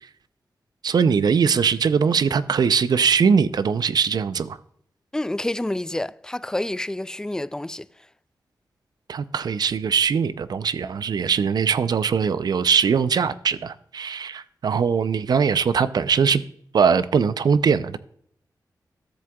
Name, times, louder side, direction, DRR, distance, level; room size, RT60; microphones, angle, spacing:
voice 1, 0.8-4.6 9.1-16.4 16.7-18.0, right 6 dB, 70° right, 0.5 m, -21 dB
voice 2, 5.1-7.9, left 1 dB, 10° left, 0.3 m, -28 dB
13.5 x 7.6 x 2.3 m
cardioid pair, 75°, 7 cm